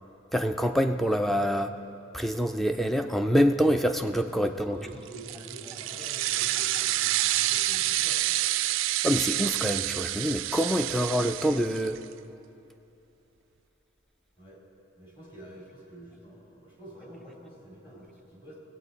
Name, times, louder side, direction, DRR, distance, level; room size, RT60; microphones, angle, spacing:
voice 1, 0.3-1.7 2.1-4.8 9.0-12.0, equal, ahead, 7 dB, 0.3 m, -26 dB
voice 2, 4.2-8.4 14.4-14.6 15.0-18.6, right 1 dB, 25° left, -5 dB, 3.0 m, -47 dB
sound 1, 5.1-12.0, right 15 dB, 75° right, 0.3 m, -28 dB
17.5 x 8.2 x 4.1 m, 2.8 s
head